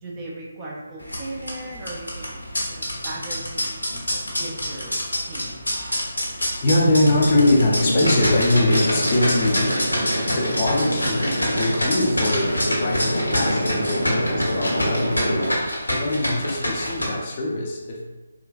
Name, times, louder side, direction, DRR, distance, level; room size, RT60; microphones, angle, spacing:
voice 1, 0.0-3.8 4.4-5.0 5.3-5.6 16.4-16.6, right 1 dB, 20° right, -5 dB, 0.5 m, -37 dB
sound 1, 1.0-17.0, equal, 80° left, 0.9 m, -26 dB
voice 2, 6.6-9.9 10.3-15.6 15.9-18.0, left 2 dB, 35° left, -3 dB, 0.5 m, -22 dB
sound 2, 7.1-15.5, equal, 90° right, 0.6 m, -27 dB
3.7 x 2.3 x 2.5 m, 1.2 s
figure-of-eight pair, 145°, 0 cm